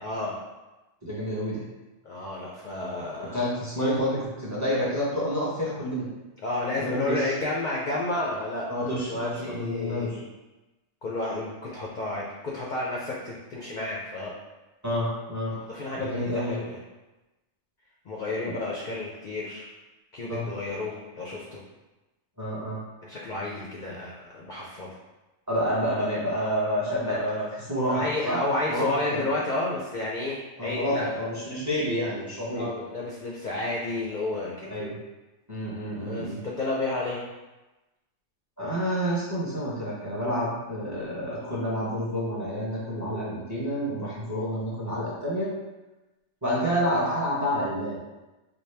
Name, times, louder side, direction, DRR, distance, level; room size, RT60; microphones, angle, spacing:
voice 1, 0.0-0.4 2.0-3.4 6.4-10.2 11.0-14.3 15.5-16.8 18.0-19.7 20.1-21.6 23.0-25.0 27.1-27.2 27.9-31.2 32.6-34.7 36.0-37.2, left 2 dB, 60° left, -4 dB, 0.5 m, -31 dB
voice 2, 1.0-1.6 3.3-6.1 6.8-7.3 8.7-10.2 14.8-15.6 15.9-16.6 18.4-18.5 20.3-20.5 22.4-22.8 25.5-28.4 28.7-29.3 30.6-32.7 34.7-35.0 35.5-36.4 38.6-45.5 46.4-48.0, equal, 15° right, -7 dB, 0.7 m, -29 dB
4.3 x 2.1 x 3.3 m, 1.1 s
omnidirectional pair, 1.3 m